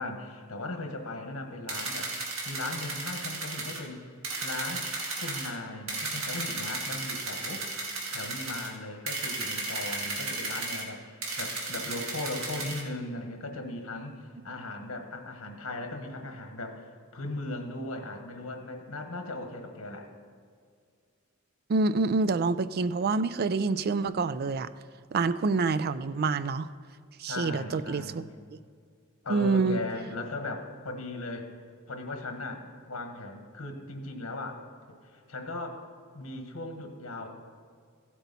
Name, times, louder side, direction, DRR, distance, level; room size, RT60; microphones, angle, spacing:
voice 1, 0.0-2.1 2.4-4.1 4.4-4.9 5.2-16.9 17.1-20.1 27.3-28.3 29.2-31.5 31.9-34.6 35.0-35.8 36.1-37.3, left 2 dB, 80° left, 4 dB, 1.4 m, -38 dB
sound 1, 1.7-3.8 4.2-5.5 5.9-8.7 9.1-10.8 11.2-12.8, right 3 dB, 70° right, 2.1 m, -34 dB
voice 2, 21.7-24.7 25.1-26.7 27.2-28.2 29.3-29.8, right 4 dB, 45° right, 14 dB, 0.4 m, -27 dB
15.5 x 8.1 x 4.1 m, 2.1 s
head